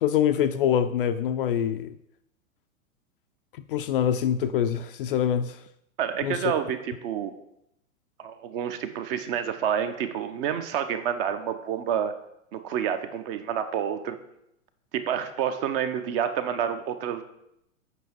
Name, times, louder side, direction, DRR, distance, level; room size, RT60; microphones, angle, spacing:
voice 1, 0.0-2.0 3.7-5.6 6.2-6.4, left 9 dB, 40° left, 0.4 m, -24 dB
voice 2, 6.0-7.3 8.2-12.1 12.5-14.2 14.9-17.2, right 8 dB, 40° right, 0.9 m, -28 dB
8.1 x 5.6 x 4.5 m
figure-of-eight pair, 105°, 42 cm